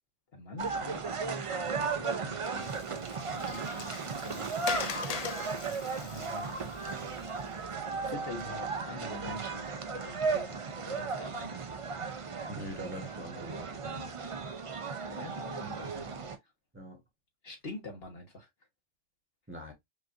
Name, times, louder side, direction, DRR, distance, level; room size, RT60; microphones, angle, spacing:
voice 1, 0.3-1.5 1.9-4.5 5.6-7.3 8.1-11.6 15.1-16.3 17.4-18.5, left 2 dB, 55° left, 1.4 m, -45 dB
sound 1, 0.6-16.4, right 4 dB, 45° right, 0.4 m, -36 dB
Water, 2.4-7.8, left 7 dB, 75° left, 0.3 m, -42 dB
voice 2, 12.5-14.1 16.7-17.0 19.5-19.7, equal, 10° right, 1.2 m, -43 dB
5.3 x 2.5 x 2.6 m
omnidirectional pair, 1.2 m